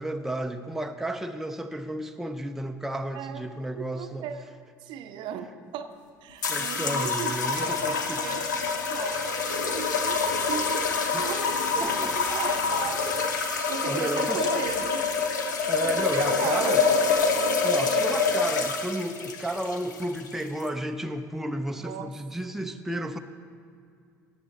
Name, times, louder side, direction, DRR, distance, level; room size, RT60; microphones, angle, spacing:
voice 1, 0.0-4.3 6.5-8.3 11.1-11.5 11.8-12.1 13.8-14.9 15.7-16.9 17.5-23.2, right 1 dB, 5° right, 6 dB, 0.6 m, -33 dB
voice 2, 3.1-3.5 3.8-4.5 4.8-5.9 6.2-10.2 10.5-15.0 15.3-15.4 15.8-17.0 21.8-22.1, right 8 dB, 55° right, 8 dB, 0.7 m, -36 dB
sound 1, 6.4-20.7, left 5 dB, 80° left, 0.9 m, -26 dB
18.0 x 7.9 x 4.1 m, 2.3 s
figure-of-eight pair, 60°, 10 cm